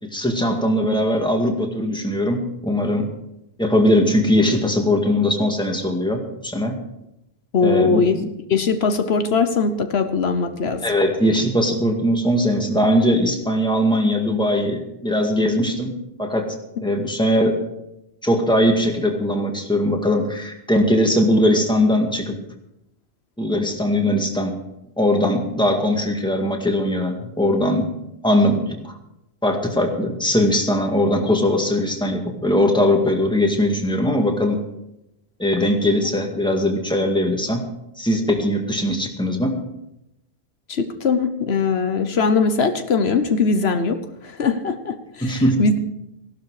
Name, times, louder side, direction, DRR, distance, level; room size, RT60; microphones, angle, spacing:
voice 1, 0.0-3.1 3.6-6.8 7.6-8.3 10.8-16.5 16.8-17.6 18.2-22.4 23.4-24.6 25.0-27.9 28.2-28.9 29.4-34.6 35.4-37.6 38.0-39.6 45.2-45.6, left 1 dB, 5° left, 2 dB, 2.0 m, -20 dB
voice 2, 7.5-8.2 8.5-10.8 40.7-45.8, left 4 dB, 75° left, 8 dB, 1.2 m, -21 dB
16.0 x 12.0 x 4.8 m, 0.85 s
omnidirectional pair, 1.1 m